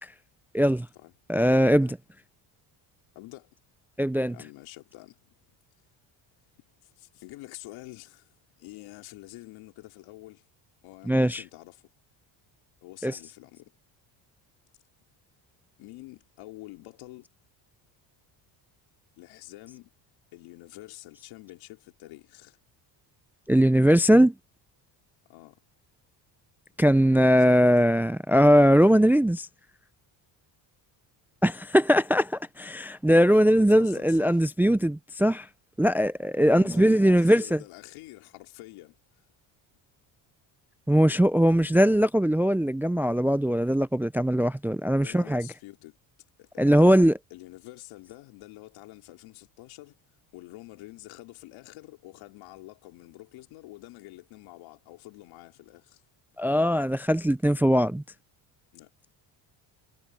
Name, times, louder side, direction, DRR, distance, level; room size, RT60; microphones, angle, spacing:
voice 1, 0.5-0.9 1.3-2.0 4.0-4.4 11.0-11.4 13.0-13.2 23.5-24.3 26.8-29.5 31.4-35.5 35.8-37.6 40.9-45.5 46.6-47.2 56.4-58.0, equal, 5° right, 0.4 m, -20 dB
voice 2, 1.4-1.9 3.2-3.5 4.3-5.3 6.8-10.4 10.8-11.9 12.8-13.7 15.8-17.3 19.2-19.9 20.3-22.6 25.3-25.6 27.4-27.9 33.5-34.4 36.4-39.0 44.9-46.0 46.4-47.0 47.3-50.0 50.3-56.0 58.7-58.9, left 18 dB, 85° left, 3.6 m, -47 dB
cardioid pair, 110°, 46 cm